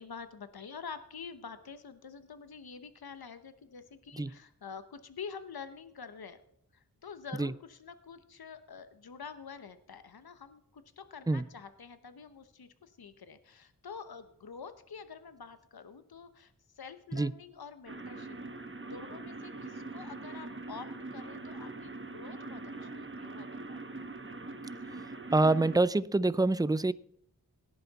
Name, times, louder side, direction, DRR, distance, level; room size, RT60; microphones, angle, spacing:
voice 1, 0.0-6.4 6.7-18.4 18.9-23.8, left 6 dB, 75° left, 1.0 m, -47 dB
sound 1, 17.9-25.8, right 2 dB, 30° right, 1.2 m, -42 dB
voice 2, 25.3-26.9, right 2 dB, 10° right, 0.4 m, -26 dB
17.5 x 10.5 x 4.1 m
cardioid pair, 40°, 37 cm